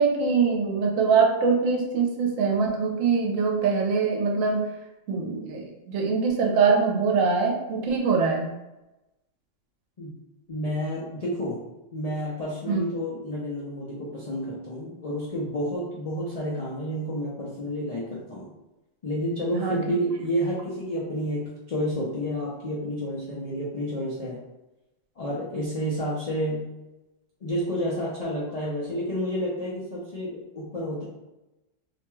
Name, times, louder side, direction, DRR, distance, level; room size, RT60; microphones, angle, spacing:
voice 1, 0.0-4.6 5.1-8.5 12.7-12.8 19.5-19.8, right 5 dB, 80° right, 0 dB, 1.0 m, -23 dB
voice 2, 10.5-11.6 11.9-18.5 19.0-24.4 25.2-26.7 27.4-31.0, equal, 65° left, -5 dB, 0.3 m, -30 dB
2.6 x 2.2 x 3.0 m, 0.98 s
omnidirectional pair, 1.4 m